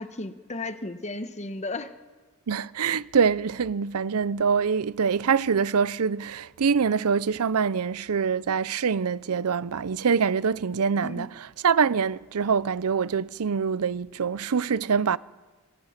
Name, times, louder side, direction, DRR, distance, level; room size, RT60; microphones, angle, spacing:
voice 1, 0.0-1.9 11.0-11.3, left 2 dB, 30° left, 1.1 m, -34 dB
voice 2, 2.5-15.2, right 6 dB, 75° right, 0.6 m, -25 dB
25.5 x 20.5 x 5.9 m
head